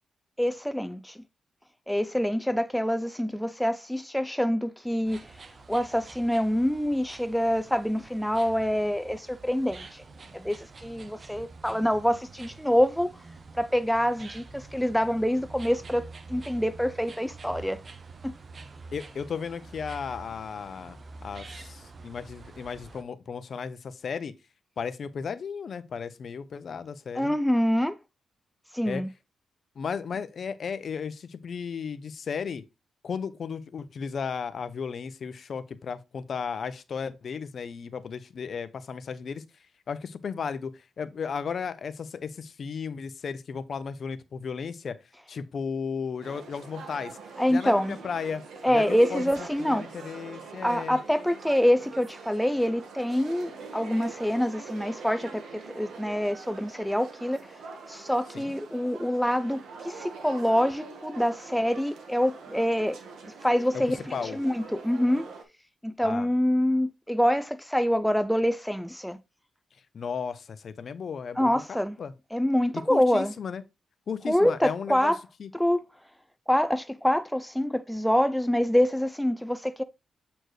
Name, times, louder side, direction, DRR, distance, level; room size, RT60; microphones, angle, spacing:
voice 1, 0.4-1.2 1.9-5.2 5.7-10.0 10.3-13.1 13.6-16.0 16.3-17.8 18.2-18.3 27.2-28.0 28.7-29.1 47.4-48.0 48.6-49.9 50.6-57.5 57.9-63.0 63.2-65.3 65.8-69.2 71.4-72.0 72.3-73.3 74.3-75.2 75.6-75.8 76.5-79.8, equal, ahead, 0.4 m, -26 dB
sound 1, 5.0-23.0, right 3 dB, 40° right, 0.8 m, -47 dB
voice 2, 18.9-24.3 24.8-27.3 28.9-29.0 29.8-32.6 33.0-39.4 39.9-45.0 45.3-47.2 47.5-48.4 48.7-49.3 49.6-51.0 58.3-58.5 63.7-63.8 64.1-64.4 66.0-66.3 69.9-72.1 72.8-73.6 74.1-75.1 75.4-75.5, left 6 dB, 55° left, 0.6 m, -35 dB
sound 2, 46.2-65.4, right 4 dB, 80° right, 1.4 m, -44 dB
7.8 x 4.3 x 3.2 m
cardioid pair, 110°, 0 cm